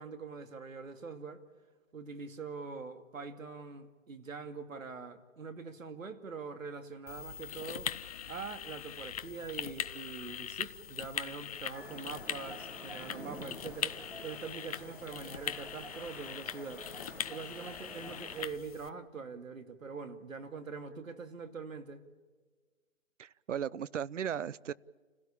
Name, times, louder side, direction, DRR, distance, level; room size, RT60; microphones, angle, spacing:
voice 1, 0.0-1.4 1.9-7.9 8.3-14.0 14.2-16.9 17.3-22.0, right 5 dB, 85° right, 8 dB, 2.5 m, -43 dB
sound 1, 7.1-18.9, left 9 dB, 30° left, 0.7 m, -41 dB
sound 2, 11.7-18.4, right 1 dB, 5° right, 1.3 m, -49 dB
voice 2, 23.2-24.7, right 8 dB, 70° right, 20 dB, 0.8 m, -36 dB
29.0 x 17.0 x 8.6 m, 1.4 s
hypercardioid pair, 150°, 39 cm